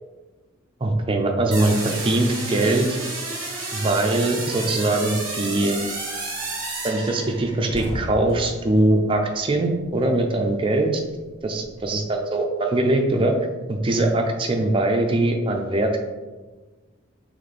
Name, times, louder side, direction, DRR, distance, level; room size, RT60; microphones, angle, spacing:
voice 1, 0.8-3.0 3.7-5.8 6.8-11.0 11.4-13.3 13.7-16.0, right 2 dB, 25° right, 3 dB, 0.4 m, -22 dB
sound 1, 1.5-7.7, right 3 dB, 40° right, 1.0 m, -31 dB
sound 2, 6.3-6.4 6.7-6.9 7.2-10.2 10.5-12.1, equal, 30° left, 1.0 m, -37 dB
4.1 x 3.2 x 3.3 m, 1.2 s
head